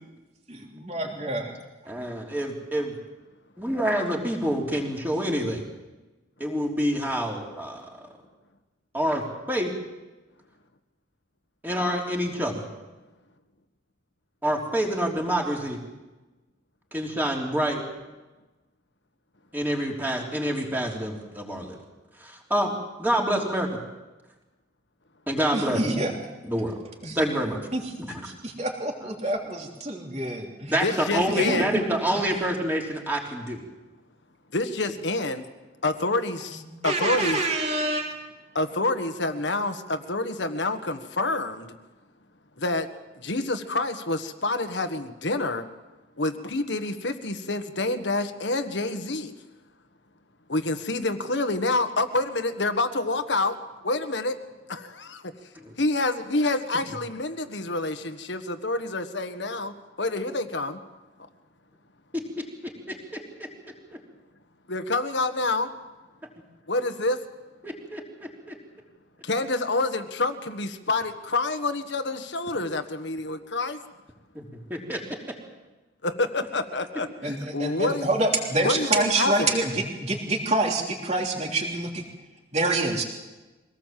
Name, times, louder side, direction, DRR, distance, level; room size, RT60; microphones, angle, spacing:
voice 1, 0.5-1.6 25.5-26.1 27.0-27.2 27.7-27.8 28.2-30.7 31.3-31.8 36.5-38.0 77.2-82.0 82.5-83.0, right 2 dB, 35° right, 1 dB, 3.3 m, -27 dB
voice 2, 1.9-3.0 3.6-5.6 6.4-7.9 8.9-9.7 11.6-12.6 14.4-15.8 16.9-17.8 19.5-21.8 22.2-22.7 23.0-23.7 25.3-25.8 26.4-26.7 27.1-27.6 28.1-28.2 30.7-33.6 55.5-55.8 62.1-62.4 62.9-63.2 67.6-68.5 74.3-75.2, equal, 10° right, -1 dB, 3.4 m, -27 dB
voice 3, 30.8-31.7 34.5-35.4 35.8-37.4 38.5-41.7 42.6-42.9 43.2-45.7 46.2-49.3 50.5-53.6 53.8-54.4 54.7-55.3 55.8-60.8 62.9-63.1 64.7-65.7 66.7-67.2 69.2-73.8 76.0-78.1 78.6-79.5, left 2 dB, 70° left, 9 dB, 1.6 m, -27 dB
24.0 x 18.0 x 7.7 m, 1.2 s
head